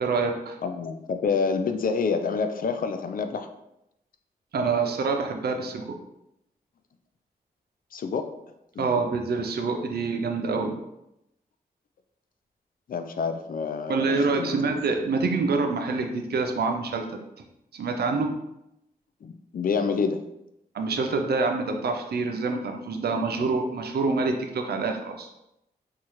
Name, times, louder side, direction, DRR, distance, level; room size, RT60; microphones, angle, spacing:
voice 1, 0.0-0.6 4.5-6.0 8.8-10.8 13.9-17.0 17.7-18.3 20.7-25.3, right 4 dB, 80° right, 4 dB, 0.5 m, -26 dB
voice 2, 0.6-3.5 7.9-8.3 8.8-8.9 12.9-14.0 14.4-14.7 19.2-20.2, left 5 dB, 60° left, 8 dB, 0.4 m, -27 dB
4.3 x 2.4 x 3.0 m, 0.85 s
cardioid pair, 65°, 16 cm